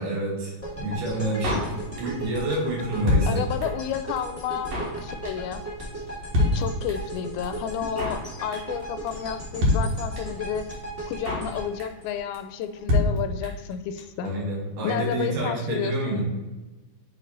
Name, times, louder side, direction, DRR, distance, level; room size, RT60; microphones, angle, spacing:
voice 1, 0.0-1.7 2.0-3.4 14.2-16.2, right 1 dB, 85° right, -2 dB, 3.6 m, -28 dB
sound 1, 0.6-12.8, right 1 dB, 20° left, 0.4 m, -37 dB
Drum kit, 1.4-2.3 2.5-2.6 2.8-3.9 4.2-4.3 4.4-5.0 5.2-5.5 5.8-5.9 6.1-6.2 6.3-7.2 7.4-7.5 7.7-8.3 8.5-8.8 9.1-9.2 9.3-9.4 9.6-10.4 10.7-10.8 11.0-11.5 11.8-12.1 12.3-12.4 12.6-12.7 12.9-13.7 14.0-14.1 14.2-14.3, left 2 dB, 55° right, 2.2 m, -25 dB
voice 2, 3.3-5.6 6.5-10.7 11.1-14.3 14.8-16.2, left 8 dB, 85° left, 9 dB, 2.3 m, -31 dB
9.3 x 3.2 x 3.9 m, 1.2 s
omnidirectional pair, 4.3 m